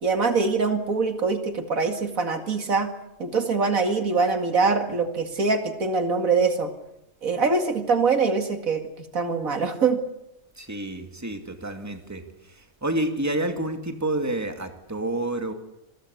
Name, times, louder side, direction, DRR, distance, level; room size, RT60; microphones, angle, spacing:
voice 1, 0.0-2.9 3.2-6.7 7.2-8.8 9.1-10.0, right 4 dB, 75° right, 7 dB, 2.5 m, -23 dB
voice 2, 10.6-15.5, right 1 dB, 10° right, 6 dB, 2.4 m, -29 dB
27.0 x 22.0 x 8.4 m, 0.85 s
omnidirectional pair, 1.5 m